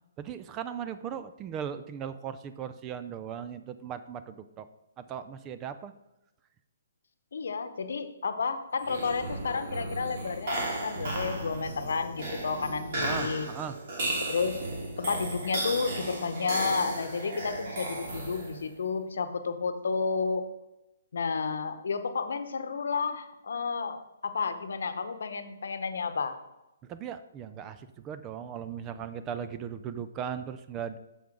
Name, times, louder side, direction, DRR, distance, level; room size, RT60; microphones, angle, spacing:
voice 1, 0.2-4.7 5.0-5.9 13.0-13.8 26.9-31.0, right 8 dB, 20° right, 11 dB, 0.5 m, -38 dB
voice 2, 7.3-13.5 14.3-14.6 15.0-20.4 21.1-26.4, left 5 dB, 75° left, 10 dB, 0.9 m, -31 dB
sound 1, 8.8-18.7, right 2 dB, 50° right, 2.8 m, -35 dB
6.9 x 5.8 x 5.1 m, 0.95 s
hypercardioid pair, 150°, 0 cm